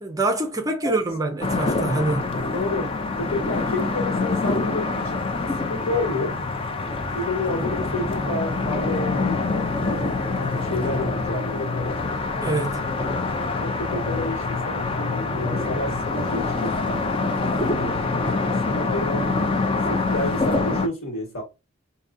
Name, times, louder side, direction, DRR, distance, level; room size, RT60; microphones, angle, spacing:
voice 1, 0.0-2.3 12.4-12.9, right 2 dB, 15° right, 0.7 m, -25 dB
sound 1, 1.4-20.9, left 3 dB, 25° left, 0.5 m, -25 dB
voice 2, 2.5-6.4 7.1-12.0 13.3-17.0 17.7-19.3 19.9-21.4, left 2 dB, 90° left, 1.6 m, -30 dB
5.0 x 2.7 x 2.6 m
head